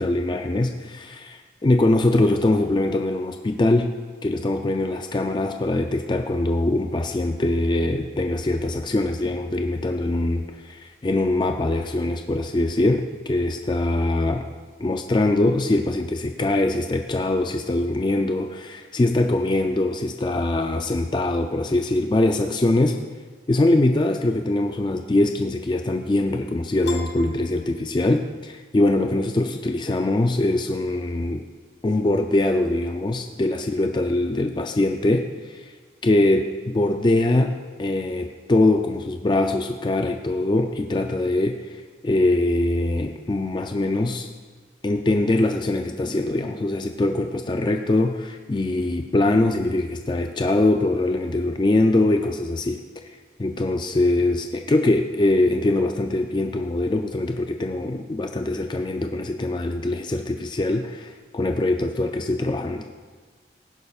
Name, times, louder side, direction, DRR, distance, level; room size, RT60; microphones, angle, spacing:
voice 1, 0.0-3.9 4.2-14.5 14.8-23.0 23.5-31.4 31.8-35.7 36.0-44.3 44.8-52.8 53.4-62.9, left 2 dB, 25° left, 5 dB, 0.4 m, -22 dB
Piano, 26.8-28.4, left 3 dB, 75° left, 0.9 m, -38 dB
17.0 x 11.0 x 2.4 m, 1.5 s
head